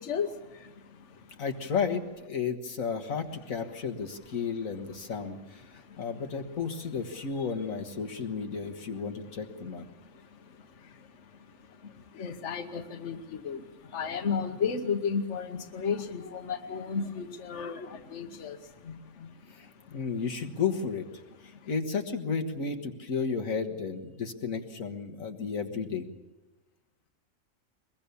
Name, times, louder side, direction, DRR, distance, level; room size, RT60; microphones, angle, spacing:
voice 1, 0.0-1.4 5.6-6.1 7.4-7.5 9.9-20.0 21.5-21.7, left 6 dB, 65° left, 7 dB, 1.5 m, -35 dB
voice 2, 1.4-9.9 19.5-21.0 21.7-26.1, left 5 dB, 90° left, 3 dB, 1.9 m, -33 dB
22.5 x 21.5 x 7.0 m, 1.1 s
omnidirectional pair, 1.4 m